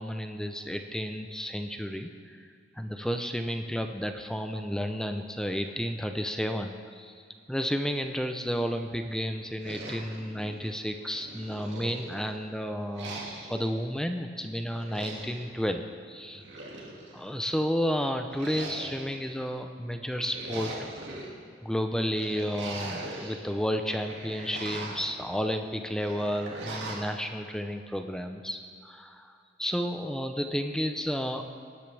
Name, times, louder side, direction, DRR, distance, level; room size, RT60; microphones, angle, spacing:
voice 1, 0.0-2.5 2.8-7.2 7.5-13.2 13.5-16.4 17.1-20.8 21.6-29.3 29.6-31.4, equal, 5° left, 6 dB, 0.5 m, -32 dB
sound 1, 9.6-10.7 11.2-12.4 12.9-13.7 14.7-15.5 16.3-17.3 18.3-19.3 20.1-21.3 22.2-23.4 23.8-25.1 26.0-27.1, right 2 dB, 85° right, 2.2 m, -41 dB
18.5 x 10.5 x 3.4 m, 2.3 s
head